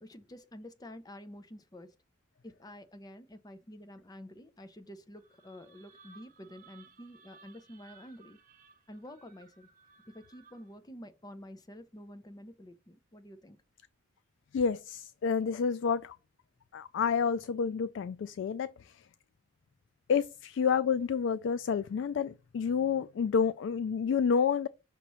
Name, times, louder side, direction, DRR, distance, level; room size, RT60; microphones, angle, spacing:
voice 1, 0.0-1.9 2.4-8.4 8.9-9.7 10.1-13.6, equal, 20° left, 0.6 m, -49 dB
sound 1, 5.1-10.9, right 5 dB, 45° right, 0.8 m, -60 dB
voice 2, 14.5-16.2 16.7-19.1 20.1-24.7, left 6 dB, 70° left, 0.3 m, -29 dB
5.8 x 3.0 x 5.4 m
head